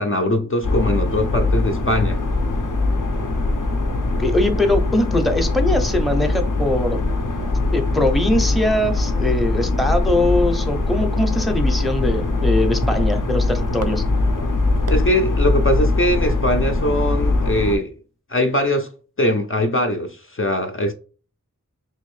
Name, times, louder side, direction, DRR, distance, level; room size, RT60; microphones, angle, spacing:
voice 1, 0.0-2.2 14.9-17.9 18.3-18.9 19.2-20.9, left 1 dB, 45° left, 0.5 m, -21 dB
sound 1, 0.6-17.8, left 2 dB, 90° left, 0.6 m, -21 dB
voice 2, 4.2-7.0 7.7-14.0, left 1 dB, ahead, 0.6 m, -21 dB
sound 2, 10.7-16.3, right 3 dB, 55° right, 0.5 m, -39 dB
3.5 x 2.6 x 3.1 m
wide cardioid pair, 45°, 30 cm